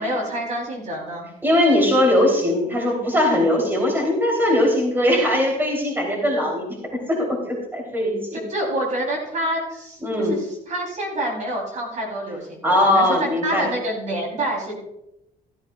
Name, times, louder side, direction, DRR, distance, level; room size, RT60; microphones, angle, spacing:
voice 1, 0.0-1.3 8.5-14.8, right 1 dB, 45° right, -1 dB, 3.4 m, -27 dB
voice 2, 1.4-6.8 7.1-8.4 10.0-10.4 12.6-13.7, left 1 dB, 10° right, -1 dB, 3.1 m, -20 dB
14.0 x 12.5 x 2.3 m, 0.87 s
cardioid pair, 110°, 17 cm